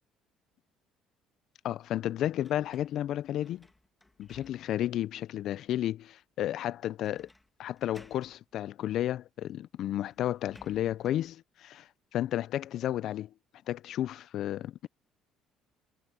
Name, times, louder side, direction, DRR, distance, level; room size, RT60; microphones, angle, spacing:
voice 1, 1.6-3.7 4.2-7.3 7.6-13.3 13.7-14.9, left 12 dB, 65° left, 0.4 m, -32 dB
sound 1, 2.4-5.0 5.5-5.6 7.0-7.5 7.8-8.4 9.4-9.5 9.8-11.3, left 2 dB, 10° left, 1.6 m, -58 dB
cardioid pair, 105°, 0 cm